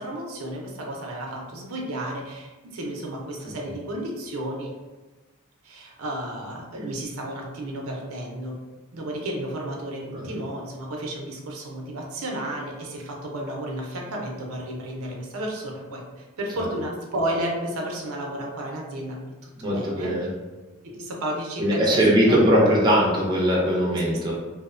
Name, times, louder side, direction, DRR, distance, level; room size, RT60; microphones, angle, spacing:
voice 1, 0.0-4.7 5.6-8.6 8.9-20.1 20.8-22.0 22.3-22.7 24.1-24.3, right 1 dB, 80° right, 0 dB, 0.5 m, -32 dB
voice 2, 19.6-20.3 21.6-24.3, equal, 20° right, -4 dB, 0.4 m, -20 dB
2.5 x 2.0 x 2.4 m, 1.2 s
head